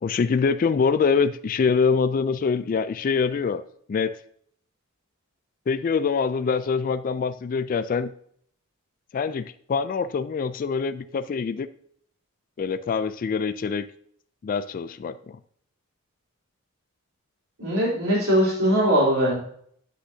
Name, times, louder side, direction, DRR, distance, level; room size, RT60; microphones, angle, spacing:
voice 1, 0.0-3.6 3.9-4.2 5.7-8.1 9.1-11.7 12.6-13.9 14.4-15.4, left 5 dB, 40° left, 12 dB, 0.3 m, -24 dB
voice 2, 17.6-19.4, equal, 90° right, -6 dB, 3.4 m, -21 dB
9.9 x 6.0 x 2.7 m, 0.64 s
head